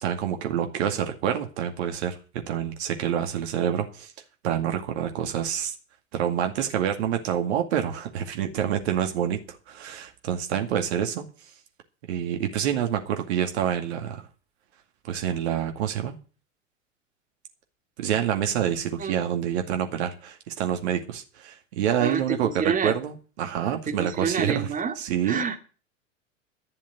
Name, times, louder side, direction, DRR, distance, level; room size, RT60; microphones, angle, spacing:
voice 1, 0.0-2.2 2.5-4.1 4.4-5.7 6.1-11.2 12.1-14.3 15.0-16.2 18.0-25.5, right 9 dB, 60° right, 2.2 m, -27 dB
voice 2, 22.0-22.9 23.9-24.9 25.2-25.6, right 6 dB, 20° right, 2.4 m, -27 dB
12.0 x 7.2 x 9.3 m
figure-of-eight pair, 85°, 38 cm